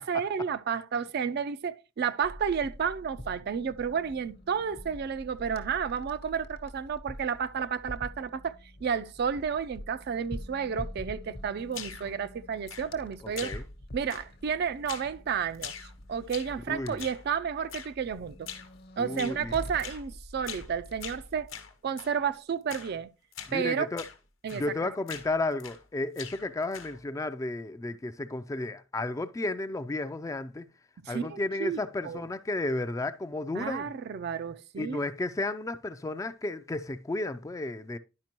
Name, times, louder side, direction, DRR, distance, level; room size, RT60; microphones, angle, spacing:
voice 1, 0.0-8.5 8.8-13.6 13.9-18.5 19.0-21.5 21.8-23.1 23.5-23.9 24.4-24.9 31.0-32.2 33.5-35.0, right 7 dB, 55° right, 0.4 m, -31 dB
sound 1, 2.2-21.5, equal, 55° left, 1.0 m, -46 dB
sound 2, 11.7-12.2 12.7-13.1 13.4-13.8 14.1-14.5 14.9-15.2 15.5-16.6 17.0-17.3 17.7-18.0 18.5-18.7 19.2-19.4 19.8-20.1 20.4-20.7 21.0-22.2 22.7-23.0 23.3-23.6 24.0-24.2 24.5-24.8 25.1-25.9 26.2-27.0, left 8 dB, 90° left, 1.0 m, -43 dB
voice 2, 13.2-13.6 16.7-17.0 19.0-19.6 23.5-24.0 24.5-30.7 31.1-33.9 34.8-38.0, left 2 dB, 15° left, 0.3 m, -33 dB
10.5 x 5.1 x 2.9 m
head